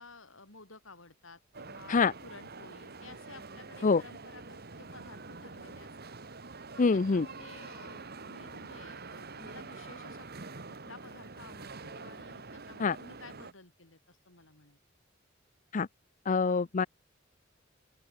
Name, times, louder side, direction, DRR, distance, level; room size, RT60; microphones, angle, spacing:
voice 1, 0.0-5.9 6.7-10.5 10.8-14.8 16.5-16.7, left 3 dB, 85° left, 7.9 m, -53 dB
sound 1, 1.5-13.5, right 3 dB, 55° right, 2.1 m, -46 dB
voice 2, 6.8-7.3 12.8-13.0 15.7-15.9 16.3-16.9, left 4 dB, 40° left, 0.5 m, -25 dB
open air
head